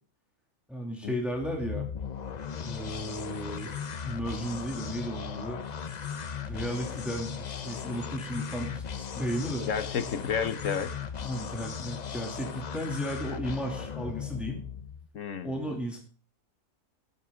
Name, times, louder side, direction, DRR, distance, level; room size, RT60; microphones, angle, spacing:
voice 1, 0.7-1.8 2.6-3.8 4.0-5.6 6.4-8.8 9.1-9.7 11.2-14.6 15.4-16.0, equal, ahead, 0 dB, 2.4 m, -34 dB
sound 1, 1.3-15.1, left 7 dB, 50° left, 0.5 m, -37 dB
voice 2, 9.7-10.9 15.1-15.8, left 7 dB, 65° left, 11 dB, 1.3 m, -31 dB
13.0 x 9.4 x 3.7 m, 0.40 s
omnidirectional pair, 1.5 m